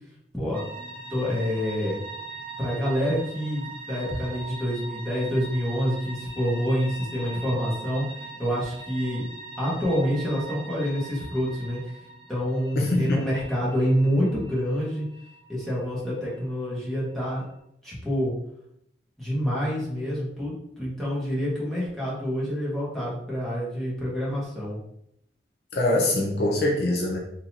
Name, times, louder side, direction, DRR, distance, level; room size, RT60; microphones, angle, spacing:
sound 1, 0.5-17.5, right 3 dB, 30° right, 0.8 m, -41 dB
voice 1, 1.1-2.0 2.6-8.0 8.4-9.2 9.6-11.8 12.3-15.0 15.5-17.4 17.8-18.3 19.2-24.8, equal, ahead, -8 dB, 1.4 m, -27 dB
voice 2, 12.7-13.2 25.7-27.2, left 1 dB, 60° left, -1 dB, 0.6 m, -23 dB
3.9 x 2.9 x 2.8 m, 0.73 s
head